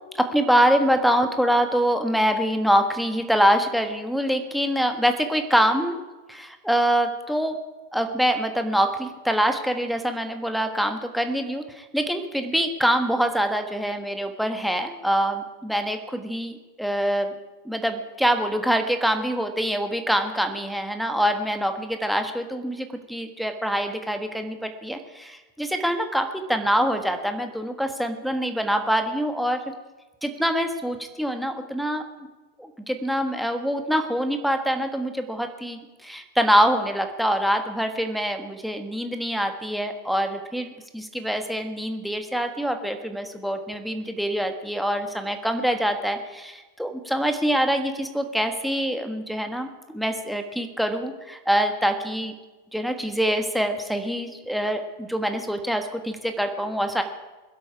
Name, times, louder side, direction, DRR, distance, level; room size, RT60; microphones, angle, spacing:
voice 1, 0.1-6.0 6.3-7.6 7.9-17.3 17.6-29.6 30.2-32.3 32.6-52.3 52.7-57.0, equal, ahead, 6 dB, 1.5 m, -25 dB
21.5 x 12.5 x 4.8 m, 1.1 s
figure-of-eight pair, 90°, 0 cm